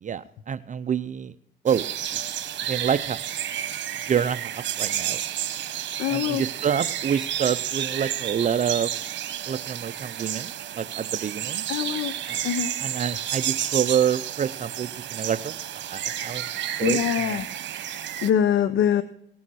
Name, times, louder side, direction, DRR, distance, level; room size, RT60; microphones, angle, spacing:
voice 1, 0.0-1.3 1.6-1.9 2.7-3.2 4.1-5.2 6.1-8.9 9.5-10.5 10.8-11.7 12.3-12.4 12.8-16.5 16.8-17.4, right 8 dB, 40° right, 11 dB, 0.5 m, -27 dB
sound 1, 1.7-18.3, right 11 dB, 65° right, 1.2 m, -31 dB
voice 2, 6.0-6.4 11.7-12.1 12.4-12.7 16.8-17.5 18.2-19.0, left 9 dB, 80° left, 14 dB, 0.7 m, -23 dB
18.5 x 7.0 x 6.2 m, 0.72 s
cardioid pair, 90°, 20 cm